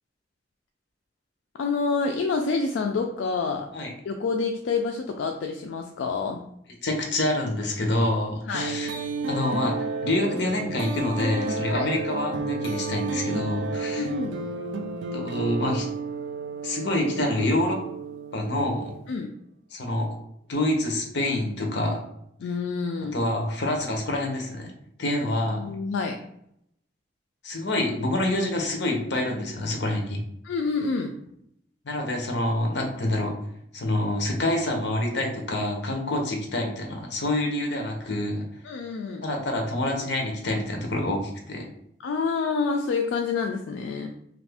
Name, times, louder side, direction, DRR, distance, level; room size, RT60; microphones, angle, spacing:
voice 1, 1.6-3.7 4.1-6.4 8.5-8.8 11.7-11.9 13.7-14.4 19.1-19.3 22.4-23.2 25.2-26.2 30.4-31.1 38.6-39.2 42.0-44.1, left 4 dB, 80° left, 3 dB, 0.3 m, -28 dB
voice 2, 6.8-8.9 9.3-14.1 15.1-15.9 16.6-17.8 18.3-18.9 19.7-20.1 20.5-22.0 23.1-24.7 25.0-25.7 27.4-30.2 31.8-33.3 33.7-38.5 39.2-41.7, left 1 dB, 65° left, 2 dB, 0.7 m, -27 dB
sound 1, 8.5-19.1, right 3 dB, 80° right, 0.4 m, -32 dB
2.6 x 2.5 x 3.4 m, 0.73 s
head